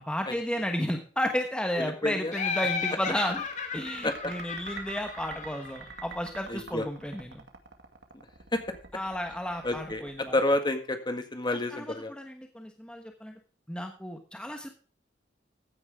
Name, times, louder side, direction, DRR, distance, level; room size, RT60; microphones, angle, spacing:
voice 1, 0.1-3.4 3.7-7.4 8.9-10.3 11.5-13.3 13.7-14.7, equal, 5° left, 4 dB, 1.2 m, -33 dB
voice 2, 1.8-2.3 4.0-4.3 6.5-6.8 8.5-8.6 9.6-10.0 10.3-12.1, left 1 dB, 25° left, 7 dB, 1.8 m, -29 dB
Laughter, 2.3-6.0, left 5 dB, 45° left, 2.4 m, -34 dB
sound 1, 2.5-11.2, right 5 dB, 70° right, 2.1 m, -47 dB
15.0 x 9.7 x 3.5 m, 0.39 s
head